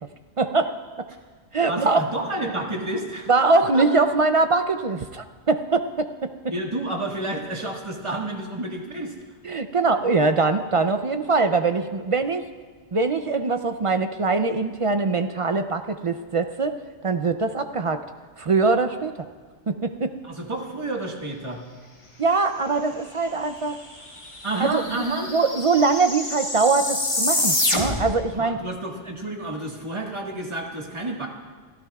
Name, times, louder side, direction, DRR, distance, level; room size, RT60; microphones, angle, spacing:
voice 1, 0.4-0.7 1.5-2.0 3.3-6.1 9.4-12.4 12.9-16.8 17.0-18.0 18.4-19.2 19.7-20.1 22.2-23.8 24.6-25.0 25.3-28.6, right 3 dB, 45° right, 8 dB, 0.4 m, -22 dB
voice 2, 1.7-3.9 6.5-9.1 20.2-21.6 24.4-25.3 28.4-31.3, right 2 dB, 25° right, 0 dB, 1.6 m, -30 dB
sound 1, 23.7-23.8 24.0-28.2, left 2 dB, 45° left, 2.0 m, -26 dB
29.0 x 13.0 x 2.3 m, 1.5 s
omnidirectional pair, 1.1 m